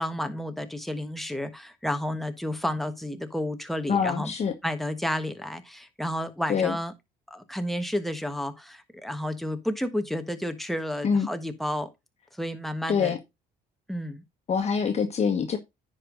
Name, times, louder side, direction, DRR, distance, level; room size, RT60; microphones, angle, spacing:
voice 1, 0.0-4.3 4.6-6.9 7.3-11.9 12.3-13.2 13.9-14.2, left 1 dB, ahead, 1.4 m, -31 dB
voice 2, 3.9-4.5 6.5-6.8 11.0-11.3 12.9-13.2 14.5-15.6, left 6 dB, 40° left, 1.6 m, -25 dB
10.0 x 5.5 x 3.9 m
cardioid pair, 110°, 17 cm